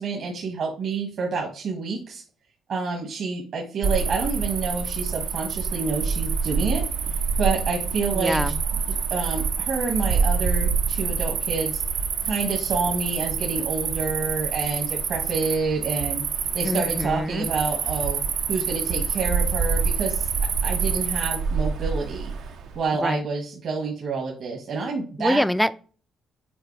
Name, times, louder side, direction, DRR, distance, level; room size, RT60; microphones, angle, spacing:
voice 1, 0.0-2.2 2.7-6.9 7.4-8.5 8.9-11.8 12.2-16.2 16.5-18.2 18.5-20.3 20.6-22.3 22.7-25.4, right 4 dB, 65° right, 0 dB, 1.5 m, -28 dB
Cricket, 3.8-22.7, right 6 dB, 90° right, 0.9 m, -26 dB
voice 2, 8.1-8.6 16.6-17.5 22.9-23.2 25.2-25.8, equal, ahead, 12 dB, 0.3 m, -25 dB
7.9 x 4.2 x 3.3 m, 0.42 s
cardioid pair, 90°, 0 cm